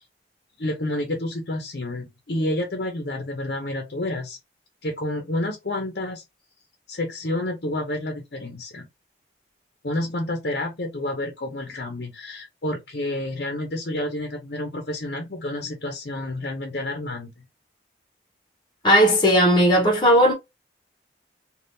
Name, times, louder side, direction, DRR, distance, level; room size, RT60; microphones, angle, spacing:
voice 1, 0.6-4.4 4.8-6.2 6.9-8.9 9.8-17.3, left 1 dB, 60° left, 0.8 m, -29 dB
voice 2, 18.8-20.3, equal, 25° left, 0.9 m, -16 dB
3.5 x 2.4 x 2.6 m
head